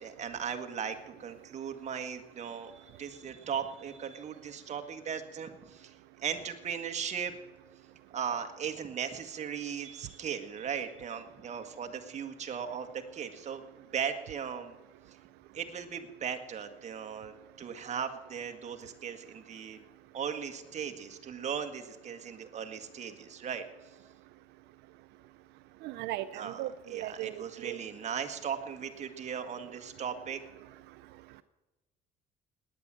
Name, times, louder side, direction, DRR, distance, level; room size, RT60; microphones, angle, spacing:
voice 1, 0.0-5.9 6.2-7.3 8.1-14.8 15.5-19.8 20.1-23.6 26.3-30.4, right 7 dB, 40° right, 6 dB, 1.7 m, -38 dB
voice 2, 25.8-27.8, right 15 dB, 85° right, 13 dB, 0.5 m, -37 dB
18.0 x 9.9 x 7.6 m, 1.1 s
cardioid pair, 110°, 17 cm